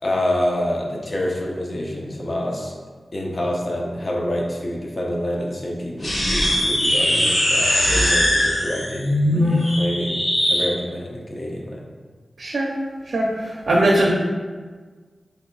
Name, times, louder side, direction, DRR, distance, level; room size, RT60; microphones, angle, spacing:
voice 1, 0.0-2.7 3.1-10.2 10.5-11.8, left 1 dB, 45° left, -1 dB, 0.7 m, -27 dB
sound 1, 6.0-10.7, left 1 dB, 65° left, 1.1 m, -20 dB
voice 2, 12.4-12.8 13.0-14.1, right 1 dB, 85° right, -3 dB, 0.5 m, -20 dB
3.3 x 2.7 x 3.8 m, 1.5 s
wide cardioid pair, 75°, 0 cm